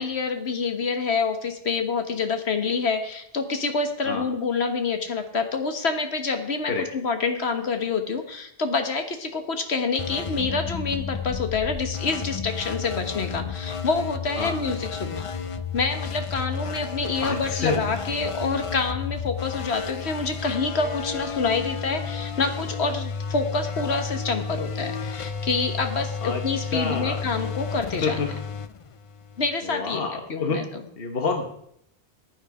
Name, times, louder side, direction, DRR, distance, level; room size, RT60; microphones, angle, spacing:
voice 1, 0.0-15.3 15.7-28.3 29.4-30.8, left 4 dB, 75° left, 6 dB, 1.7 m, -27 dB
sound 1, 10.0-29.5, left 6 dB, 40° left, 0.5 m, -32 dB
voice 2, 17.2-17.8 26.2-26.4 26.7-27.2 28.0-28.4 29.6-30.6 31.0-31.5, left 4 dB, 60° left, 4 dB, 1.5 m, -27 dB
14.5 x 9.1 x 4.9 m, 0.73 s
omnidirectional pair, 1.1 m